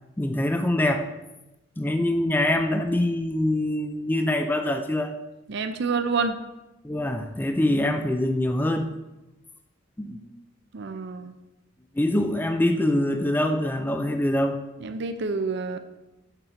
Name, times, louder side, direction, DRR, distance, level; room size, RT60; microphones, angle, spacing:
voice 1, 0.2-1.1 1.8-5.1 6.8-8.9 10.0-10.3 11.9-14.6, left 1 dB, 10° left, 6 dB, 0.4 m, -24 dB
voice 2, 5.5-6.4 10.7-11.4 14.8-15.8, right 4 dB, 60° right, 9 dB, 0.5 m, -28 dB
6.7 x 4.4 x 4.9 m, 0.98 s
head